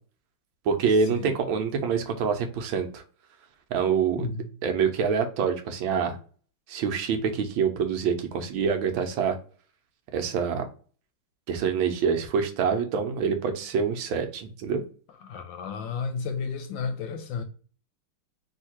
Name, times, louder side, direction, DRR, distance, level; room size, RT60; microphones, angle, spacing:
voice 1, 0.6-3.0 3.7-4.3 4.6-6.2 6.7-9.4 10.1-10.7 11.5-14.8, right 6 dB, 75° right, 1.4 m, -26 dB
voice 2, 4.1-4.5 15.2-17.4, left 5 dB, 70° left, 1.3 m, -32 dB
3.7 x 2.8 x 4.3 m
omnidirectional pair, 2.3 m